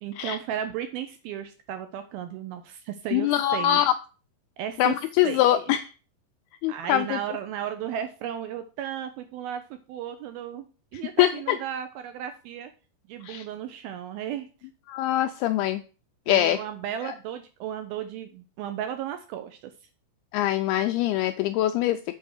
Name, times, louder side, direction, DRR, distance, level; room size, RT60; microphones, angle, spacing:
voice 1, 0.0-3.8 4.6-5.0 5.2-5.5 6.7-10.7 10.9-12.7 13.1-14.5 16.3-19.7, right 10 dB, 80° right, 8 dB, 2.2 m, -34 dB
voice 2, 3.1-3.9 4.8-5.8 6.6-7.2 11.2-11.6 13.2-13.4 14.9-15.8 16.3-16.6 17.0-17.1 20.3-22.0, left 13 dB, 85° left, 8 dB, 2.2 m, -23 dB
7.5 x 4.5 x 6.4 m, 0.35 s
omnidirectional pair, 5.0 m